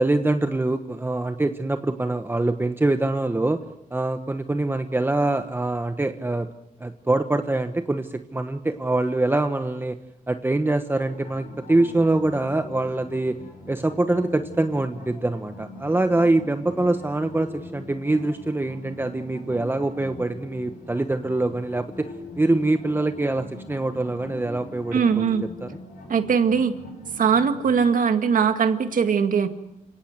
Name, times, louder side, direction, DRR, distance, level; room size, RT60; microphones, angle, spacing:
voice 1, 0.0-3.6 3.9-6.5 6.8-10.0 10.3-13.4 13.7-22.1 22.4-25.2 25.6-25.7, right 2 dB, 15° right, 8 dB, 1.1 m, -24 dB
sound 1, 11.0-27.8, left 1 dB, 75° left, 7.4 m, -42 dB
voice 2, 24.9-25.5 26.1-26.7 27.2-29.5, right 6 dB, 70° right, 8 dB, 2.0 m, -20 dB
28.5 x 17.5 x 8.2 m, 0.87 s
cardioid pair, 100°, 15 cm